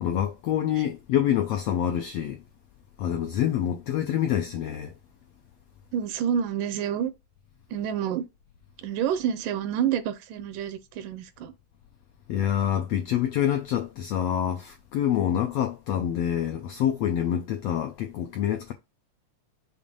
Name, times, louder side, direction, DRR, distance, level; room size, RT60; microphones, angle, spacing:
voice 1, 0.0-2.4 3.0-4.9 12.3-18.7, left 10 dB, 85° left, 1.4 m, -26 dB
voice 2, 5.9-7.1 7.7-8.3 8.8-11.5, right 9 dB, 80° right, 2.3 m, -28 dB
7.0 x 2.6 x 5.3 m
omnidirectional pair, 3.7 m